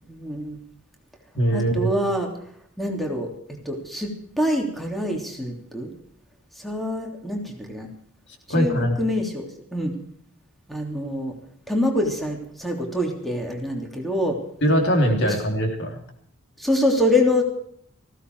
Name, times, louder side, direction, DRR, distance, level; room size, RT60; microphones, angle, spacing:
voice 1, 0.1-0.6 1.5-2.3 2.8-4.1 4.4-5.9 6.6-7.9 8.5-9.9 10.7-11.3 11.7-14.4 15.2-15.3 16.6-17.4, left 1 dB, ahead, 1 dB, 3.1 m, -25 dB
voice 2, 1.3-1.9 8.5-9.0 14.6-16.0, equal, 60° left, 3 dB, 3.6 m, -21 dB
19.5 x 16.0 x 4.7 m, 0.62 s
head